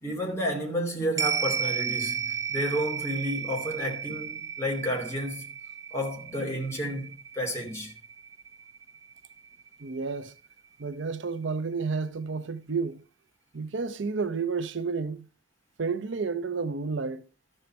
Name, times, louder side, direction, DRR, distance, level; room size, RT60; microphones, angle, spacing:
voice 1, 0.0-5.5 5.9-7.9, equal, 15° left, 2.7 m, -31 dB
sound 1, 1.2-9.7 10.1-10.2, right 7 dB, 15° right, 0.6 m, -34 dB
voice 2, 9.8-10.3 10.8-13.0 13.5-15.2 15.8-17.2, right 4 dB, 70° right, 0.6 m, -31 dB
13.0 x 5.5 x 4.4 m
head